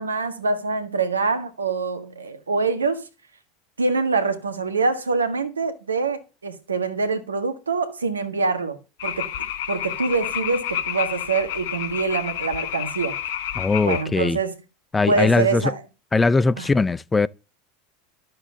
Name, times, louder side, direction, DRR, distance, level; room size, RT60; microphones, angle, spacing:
voice 1, 0.0-3.0 3.8-9.3 9.7-13.1 13.9-14.5 15.1-15.8 16.6-16.7, right 4 dB, 85° right, 1.7 m, -25 dB
sound 1, 9.0-14.0, left 10 dB, 65° left, 1.2 m, -30 dB
voice 2, 13.6-14.4 14.9-15.7 16.1-17.3, left 3 dB, 15° left, 0.6 m, -20 dB
12.5 x 7.7 x 6.8 m
figure-of-eight pair, 80°, 0 cm